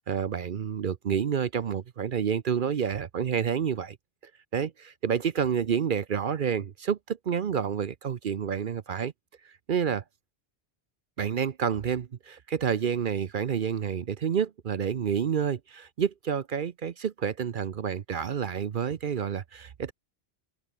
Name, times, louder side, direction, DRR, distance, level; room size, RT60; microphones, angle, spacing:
voice 1, 0.0-4.0 4.5-9.1 9.7-10.0 11.2-19.9, right 7 dB, 55° right, 0.8 m, -29 dB
open air
omnidirectional pair, 1.1 m